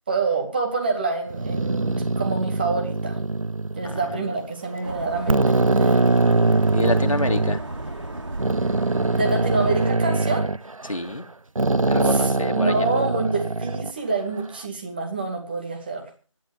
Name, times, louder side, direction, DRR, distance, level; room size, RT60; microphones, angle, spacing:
voice 1, 0.1-3.2 3.7-6.0 9.1-10.5 12.0-16.1, right 3 dB, 20° right, 2 dB, 2.3 m, -27 dB
sound 1, 1.3-4.2 4.8-4.9 5.3-7.6 8.4-11.2 11.6-13.9, right 2 dB, 80° right, 0.9 m, -22 dB
sound 2, 4.8-9.9, right 2 dB, 60° right, 3.9 m, -34 dB
voice 2, 6.7-7.6 10.8-11.2 11.9-12.8, left 1 dB, 80° left, 5 dB, 2.3 m, -27 dB
25.5 x 10.0 x 3.5 m, 0.40 s
figure-of-eight pair, 170°, 17 cm